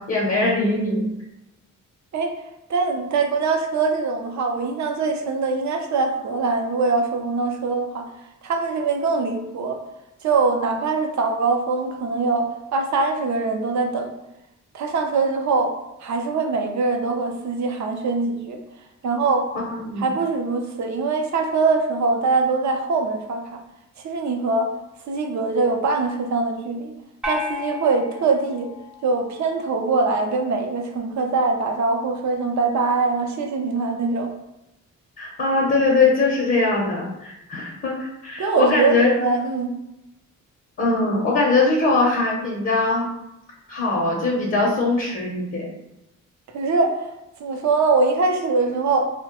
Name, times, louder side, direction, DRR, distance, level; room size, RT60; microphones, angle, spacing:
voice 1, 0.1-1.0 19.7-20.1 35.2-39.1 40.8-43.1 43.7-45.7, left 3 dB, 40° left, -2 dB, 0.6 m, -21 dB
voice 2, 2.7-8.0 8.4-9.8 10.2-14.1 14.7-15.7 16.0-18.6 19.0-19.5 20.0-23.4 24.0-24.7 25.1-26.9 27.2-28.7 29.0-34.3 38.4-39.7 46.5-47.1 47.4-49.1, right 3 dB, 60° right, 3 dB, 0.5 m, -22 dB
sound 1, 27.2-29.7, left 3 dB, 5° right, 0.4 m, -33 dB
3.0 x 2.1 x 2.9 m, 0.89 s
wide cardioid pair, 120°, 32 cm